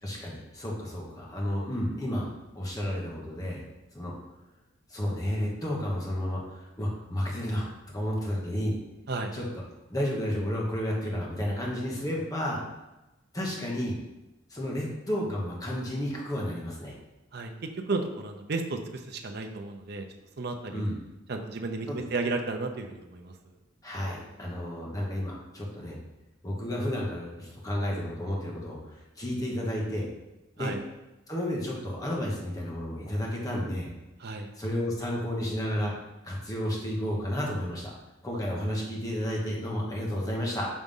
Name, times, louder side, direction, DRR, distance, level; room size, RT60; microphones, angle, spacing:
voice 1, 0.0-3.6 3.9-4.1 4.9-8.8 9.3-9.4 9.9-12.6 13.3-14.0 14.5-16.9 20.7-20.9 21.9-22.0 23.8-26.0 26.4-30.1 30.6-30.7 31.3-33.9 34.6-35.9 36.2-37.9 38.2-40.7, equal, 20° left, -3 dB, 1.2 m, -32 dB
voice 2, 17.3-20.1 20.4-20.9 21.3-23.3 30.6-30.8 34.2-34.5, right 3 dB, 55° right, 4 dB, 0.6 m, -33 dB
5.3 x 3.6 x 5.4 m, 1.0 s
head